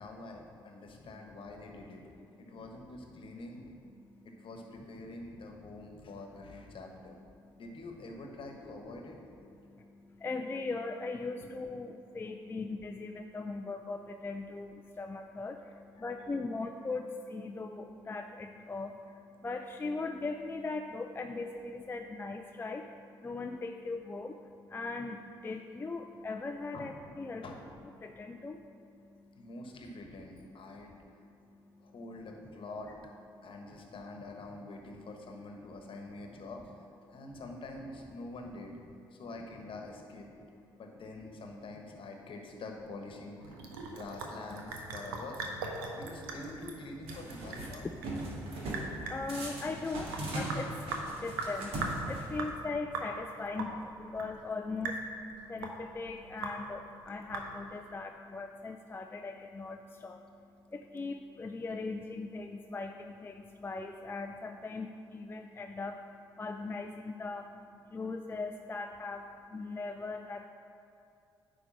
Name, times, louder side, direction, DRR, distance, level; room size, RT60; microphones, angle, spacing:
voice 1, 0.0-2.0 2.4-3.7 4.2-7.2 7.6-9.2 16.0-16.3 26.7-27.0 27.4-27.6 29.4-31.2 31.8-32.9 33.4-38.8 39.1-40.3 40.8-43.6 43.9-45.4 45.9-47.9, left 2 dB, 50° left, 2 dB, 1.2 m, -46 dB
voice 2, 9.6-27.4 28.0-29.5 30.7-30.8 31.2-31.9 33.3-33.5 37.1-37.2 40.3-40.4 40.7-40.8 43.7-44.0 45.8-46.0 48.3-70.5, left 3 dB, 20° left, 4 dB, 0.4 m, -40 dB
Sink (filling or washing) / Drip, 43.4-57.9, right 3 dB, 80° right, 0.7 m, -41 dB
sound 1, 47.1-47.7 48.0-48.9 49.3-52.5, right 1 dB, 55° right, 1.6 m, -39 dB
9.7 x 3.3 x 6.1 m, 2.7 s
figure-of-eight pair, 45°, 12 cm